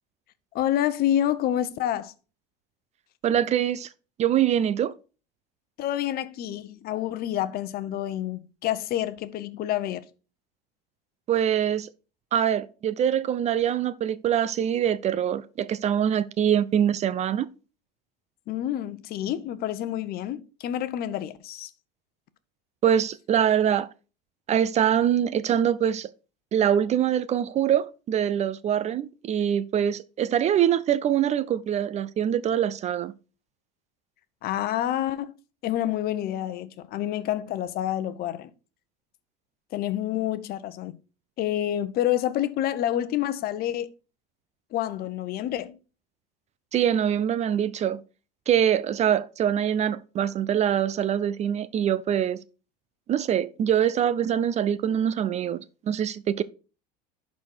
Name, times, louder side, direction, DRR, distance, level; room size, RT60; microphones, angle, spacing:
voice 1, 0.5-2.1 5.8-10.0 18.5-21.7 34.4-35.3 35.6-38.5 39.7-41.0 41.4-43.9 44.7-45.8, left 12 dB, 50° left, 0.9 m, -28 dB
voice 2, 3.2-3.9 4.2-4.9 11.3-11.9 12.3-17.5 22.8-23.9 24.5-26.1 26.5-33.1 46.7-48.0 48.5-52.4 53.1-56.4, right 9 dB, 35° right, 0.5 m, -24 dB
11.5 x 4.2 x 4.5 m
hypercardioid pair, 95°, 21 cm